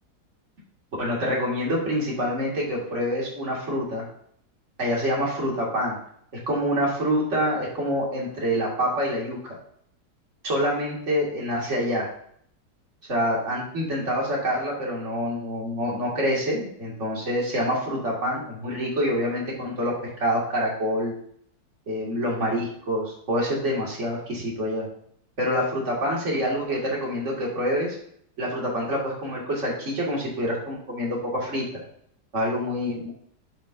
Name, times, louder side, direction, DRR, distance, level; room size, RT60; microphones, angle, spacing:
voice 1, 1.0-4.1 4.8-6.0 6.5-9.4 10.4-12.1 13.1-21.1 21.9-24.9 25.4-28.0 28.4-31.8 32.3-33.1, equal, 45° right, -3 dB, 2.3 m, -26 dB
10.5 x 5.3 x 2.6 m, 0.66 s
omnidirectional pair, 1.9 m